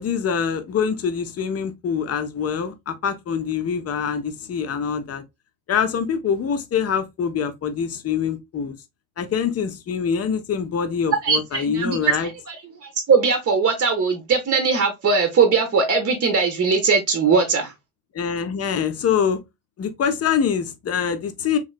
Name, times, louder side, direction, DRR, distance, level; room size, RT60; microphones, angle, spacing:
voice 1, 0.0-5.2 5.7-8.7 9.2-12.3 18.1-19.4 19.8-21.6, left 7 dB, 35° left, 0.7 m, -24 dB
voice 2, 11.2-12.6 13.1-17.7, right 5 dB, 30° right, 0.8 m, -20 dB
3.0 x 2.9 x 2.4 m
hypercardioid pair, 60°, 44 cm